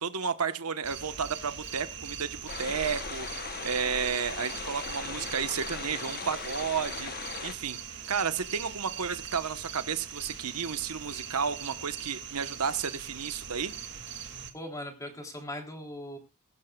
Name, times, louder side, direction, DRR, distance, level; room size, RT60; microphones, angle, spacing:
voice 1, 0.0-7.1 7.4-13.7, right 6 dB, 80° right, 11 dB, 1.0 m, -32 dB
sound 1, 0.8-14.5, right 8 dB, 55° right, 2.2 m, -41 dB
sound 2, 2.5-7.5, left 6 dB, 45° left, 0.9 m, -39 dB
voice 2, 14.5-16.2, left 1 dB, 15° left, 2 dB, 3.2 m, -39 dB
21.5 x 12.0 x 2.3 m, 0.27 s
head